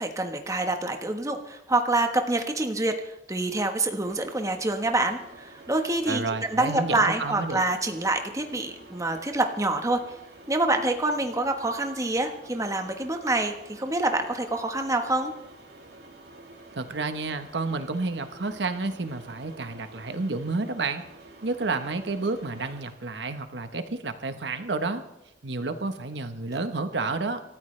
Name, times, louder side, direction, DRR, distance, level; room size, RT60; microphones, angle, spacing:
voice 1, 0.0-6.2 6.5-10.0 10.5-15.3, right 2 dB, 20° right, 5 dB, 1.3 m, -26 dB
sound 1, 4.0-22.9, right 2 dB, 65° right, 2.7 m, -49 dB
voice 2, 6.1-7.6 16.7-21.0 21.4-25.0 25.4-27.4, right 3 dB, 85° right, 8 dB, 1.2 m, -30 dB
27.5 x 13.5 x 3.3 m, 0.88 s
head